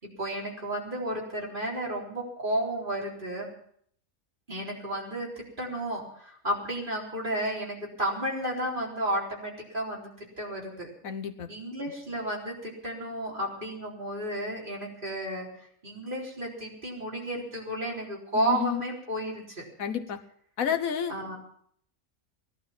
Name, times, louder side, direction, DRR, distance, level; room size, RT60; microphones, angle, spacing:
voice 1, 0.0-3.5 4.5-10.9 11.5-15.5 15.8-19.6 21.1-21.4, right 1 dB, 35° right, -3 dB, 4.2 m, -32 dB
voice 2, 11.0-11.5 18.3-18.8 19.8-20.2 20.6-21.1, left 8 dB, 70° left, 7 dB, 1.4 m, -30 dB
18.0 x 11.5 x 5.9 m, 0.64 s
omnidirectional pair, 1.5 m